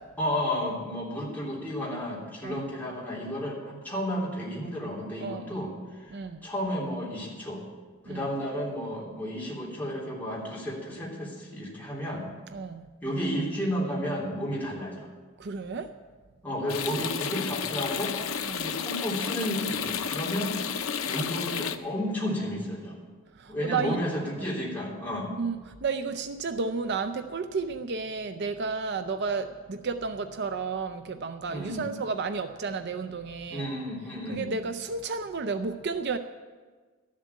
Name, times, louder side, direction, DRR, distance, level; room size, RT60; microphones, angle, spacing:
voice 1, 0.2-7.6 8.0-12.3 13.0-15.1 16.4-18.1 18.6-20.5 21.0-23.0 23.5-25.3 31.5-31.9 33.5-34.5, equal, 10° left, -5 dB, 3.2 m, -32 dB
voice 2, 5.2-5.6 6.1-6.5 8.1-8.3 12.5-12.9 15.4-15.9 18.4-18.7 23.3-24.0 24.4-24.5 25.4-33.7 34.3-36.2, right 4 dB, 55° right, 9 dB, 0.5 m, -32 dB
sound 1, 16.7-21.8, left 7 dB, 85° left, 0.7 m, -32 dB
13.0 x 7.4 x 8.4 m, 1.4 s
head